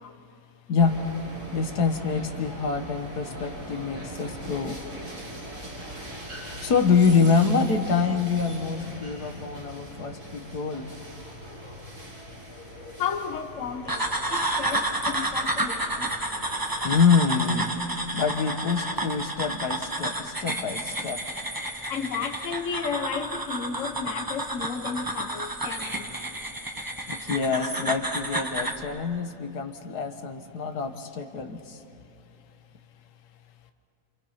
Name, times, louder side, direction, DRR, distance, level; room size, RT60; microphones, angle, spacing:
voice 1, 0.7-1.0 1.5-4.8 6.6-10.9 16.8-17.7 18.1-21.2 27.1-31.8, left 5 dB, 75° left, 7 dB, 1.8 m, -25 dB
sound 1, 0.8-17.2, equal, 65° right, 5.6 m, -41 dB
voice 2, 13.0-14.0 14.3-14.8 15.1-16.1 21.9-26.0, left 6 dB, 55° left, 7 dB, 1.3 m, -33 dB
sound 2, 13.9-28.8, right 1 dB, 15° right, 1.4 m, -30 dB
28.5 x 27.5 x 5.8 m, 2.8 s
omnidirectional pair, 1.7 m